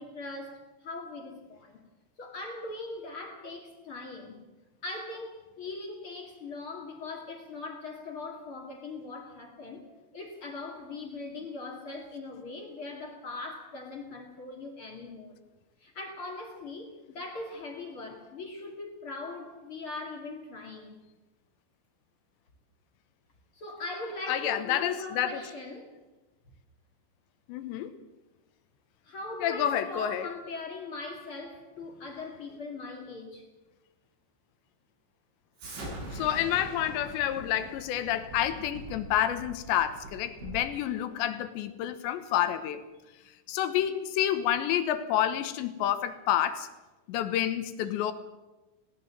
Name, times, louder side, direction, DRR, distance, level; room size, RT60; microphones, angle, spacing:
voice 1, 0.0-1.8 2.2-4.4 4.8-9.8 10.1-15.4 15.8-21.0 23.5-25.9 29.0-33.5, left 2 dB, 40° left, 2 dB, 2.1 m, -40 dB
voice 2, 24.3-25.4 27.5-27.9 29.4-30.3 36.1-42.8 43.5-46.7 47.1-48.1, left 11 dB, 75° left, 11 dB, 3.0 m, -29 dB
Explosion, 35.6-40.7, right 1 dB, 70° right, 10.0 m, -43 dB
19.5 x 18.5 x 7.4 m, 1.1 s
omnidirectional pair, 5.8 m